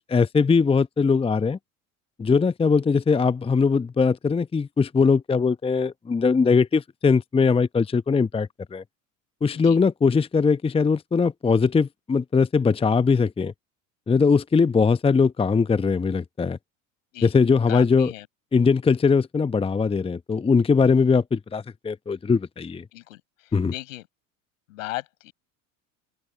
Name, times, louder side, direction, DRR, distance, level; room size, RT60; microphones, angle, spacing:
voice 1, 0.0-1.6 2.2-8.8 9.4-13.5 14.1-16.6 17.2-18.1 18.5-22.8 23.5-23.7, left 5 dB, 15° left, 0.9 m, -21 dB
voice 2, 17.7-18.3 22.9-24.0 24.7-25.3, left 17 dB, 70° left, 8.0 m, -36 dB
open air
figure-of-eight pair, 65°, 41 cm